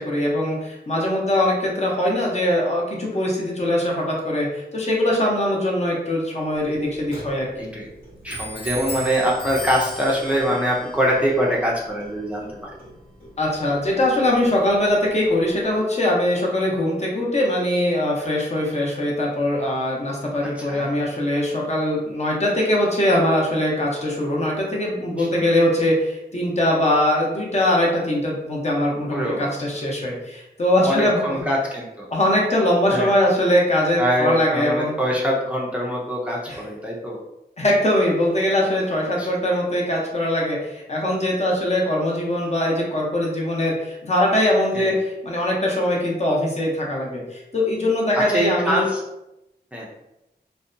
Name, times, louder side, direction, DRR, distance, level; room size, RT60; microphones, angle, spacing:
voice 1, 0.0-7.7 13.4-31.2 32.1-35.0 36.5-36.6 37.6-48.9, left 1 dB, 40° left, -3 dB, 0.7 m, -22 dB
Clock, 6.5-15.8, equal, 65° left, 1.2 m, -39 dB
voice 2, 8.2-12.7 20.4-20.9 25.2-25.5 29.1-29.5 30.8-32.1 32.9-33.1 34.0-37.2 39.1-39.3 44.7-45.0 48.1-49.0 49.7-49.9, equal, 10° right, -4 dB, 0.4 m, -24 dB
2.6 x 2.1 x 2.5 m, 0.92 s
wide cardioid pair, 95°, 18 cm